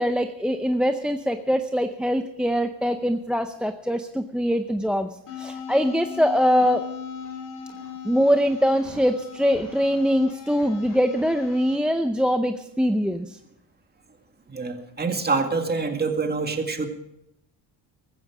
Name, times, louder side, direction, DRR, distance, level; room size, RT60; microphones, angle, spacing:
voice 1, 0.0-5.1 5.4-6.8 8.0-13.4, equal, ahead, 8 dB, 0.6 m, -23 dB
sound 1, 5.3-11.8, left 7 dB, 45° left, 3.8 m, -38 dB
voice 2, 14.5-16.9, right 4 dB, 20° right, 5 dB, 2.0 m, -26 dB
15.5 x 14.0 x 4.9 m, 0.81 s
cardioid pair, 105°, 43 cm